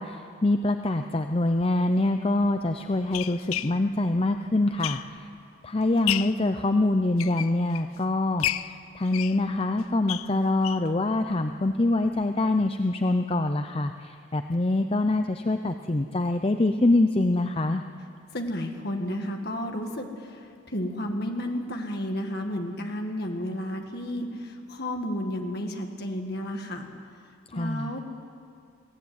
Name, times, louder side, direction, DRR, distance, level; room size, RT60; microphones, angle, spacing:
voice 1, 0.0-5.3 5.6-17.8 27.5-27.9, left 2 dB, 25° left, 7 dB, 0.6 m, -25 dB
sound 1, 1.5-1.6 2.4-5.4 5.8-6.5 7.0-8.0 8.4-10.9 11.3-11.4 11.7-11.8 12.1-12.2, left 12 dB, 85° left, 0.5 m, -33 dB
voice 2, 18.3-26.9 27.5-28.0, equal, 50° left, 3 dB, 2.0 m, -32 dB
22.5 x 16.0 x 9.4 m, 2.3 s
head